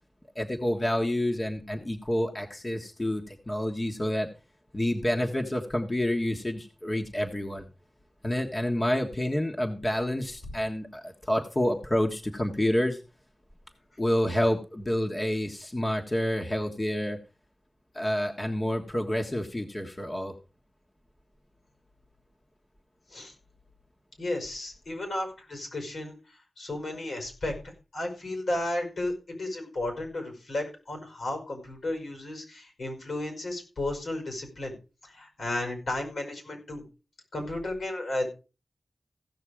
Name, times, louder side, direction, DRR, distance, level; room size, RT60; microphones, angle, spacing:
voice 1, 0.3-4.3 4.7-7.6 8.2-13.0 14.0-17.2 17.9-20.3, left 1 dB, 25° left, 2 dB, 1.5 m, -28 dB
voice 2, 24.2-26.2 26.6-27.5 27.9-34.7 35.0-36.8 37.3-38.3, left 1 dB, 80° left, 4 dB, 5.4 m, -33 dB
16.0 x 6.6 x 4.9 m, 0.32 s
wide cardioid pair, 65°, 0 cm